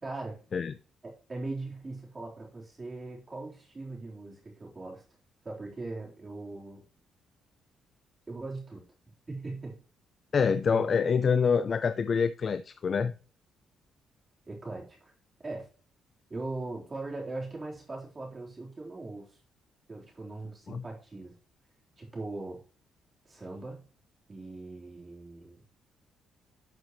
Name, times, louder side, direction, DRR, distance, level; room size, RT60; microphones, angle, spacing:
voice 1, 0.0-0.4 1.0-5.0 5.4-6.8 8.3-8.8 9.3-9.8 10.7-10.8 14.5-15.1 15.4-15.7 16.3-19.4 19.9-21.4 22.0-22.6 23.2-23.8 24.3-25.6, right 2 dB, 30° right, 3.8 m, -40 dB
voice 2, 10.3-13.2 20.7-20.8, left 6 dB, 45° left, 0.5 m, -26 dB
12.0 x 6.2 x 3.1 m
cardioid pair, 90°, 0 cm